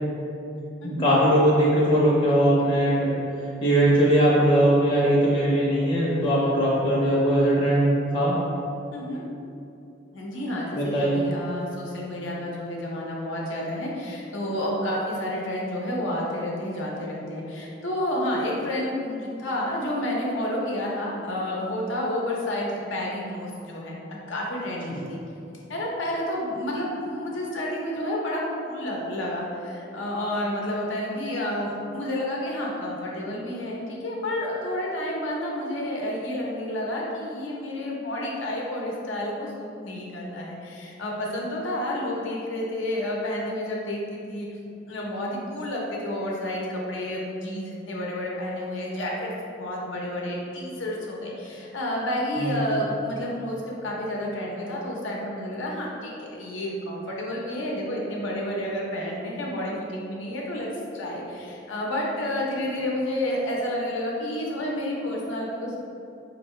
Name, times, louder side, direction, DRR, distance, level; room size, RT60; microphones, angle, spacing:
voice 1, 0.8-3.1 3.6-8.3 10.7-11.3 52.4-52.6, right 1 dB, 25° left, -7 dB, 0.6 m, -20 dB
voice 2, 8.9-9.2 10.1-24.0 24.3-25.2 25.7-44.5 44.9-65.8, left 1 dB, 85° left, -3 dB, 0.7 m, -30 dB
4.5 x 2.6 x 3.1 m, 2.7 s
head